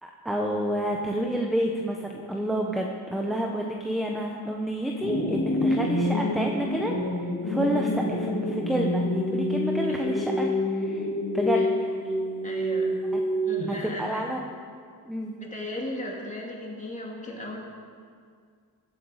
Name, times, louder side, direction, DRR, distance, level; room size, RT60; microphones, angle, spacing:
voice 1, 0.0-11.1 11.3-11.9 13.1-13.4 13.7-14.4 15.1-15.3, equal, ahead, 1 dB, 0.7 m, -29 dB
sound 1, 5.0-13.9, left 1 dB, 70° left, 3.2 m, -27 dB
voice 2, 12.4-12.9 13.4-14.3 15.3-17.6, left 1 dB, 20° left, -2 dB, 2.1 m, -36 dB
21.5 x 7.8 x 4.8 m, 2.1 s
wide cardioid pair, 170°, 40 cm